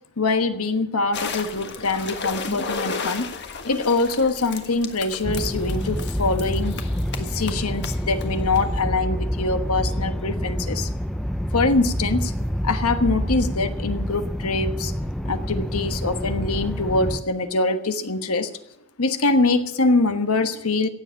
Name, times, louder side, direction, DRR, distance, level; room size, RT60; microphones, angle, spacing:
voice 1, 0.2-3.3 3.6-6.7 7.1-10.9 11.5-12.3 12.6-14.9 15.2-18.5 19.0-20.9, left 3 dB, 85° left, 9 dB, 1.3 m, -23 dB
sound 1, 1.1-8.8, left 4 dB, 50° left, 1.5 m, -34 dB
sound 2, 5.2-17.2, equal, ahead, 0.5 m, -27 dB
16.5 x 7.8 x 8.9 m, 0.85 s
head